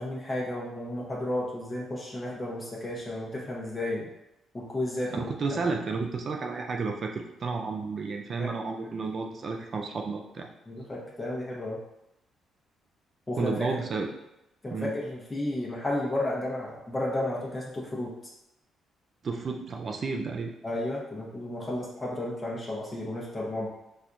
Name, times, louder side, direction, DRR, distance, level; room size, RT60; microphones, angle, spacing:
voice 1, 0.0-4.0 4.5-5.3 8.4-8.5 10.7-11.8 13.3-13.5 14.6-18.1 20.6-23.7, left 1 dB, 20° left, -4 dB, 0.8 m, -32 dB
voice 2, 5.1-10.5 13.3-14.1 14.7-14.9 19.2-20.5, right 4 dB, 45° right, 2 dB, 0.3 m, -32 dB
4.1 x 2.3 x 2.5 m, 0.88 s
cardioid pair, 90°, 0 cm